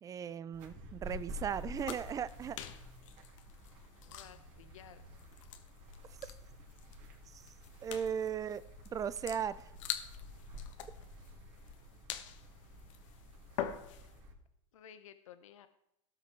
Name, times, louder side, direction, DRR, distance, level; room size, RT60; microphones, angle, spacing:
voice 1, 0.0-2.6 6.2-6.3 7.3-7.4 7.8-9.7, right 8 dB, 20° right, 16 dB, 0.5 m, -37 dB
sound 1, 0.5-14.3, left 1 dB, 45° right, 3.2 m, -50 dB
sound 2, 1.8-14.2, left 10 dB, 75° left, 1.3 m, -46 dB
voice 2, 4.0-5.0 13.7-13.8 14.7-15.7, left 9 dB, 90° left, 11 dB, 0.8 m, -55 dB
17.5 x 5.9 x 4.6 m, 0.82 s
supercardioid pair, 125°, 17 cm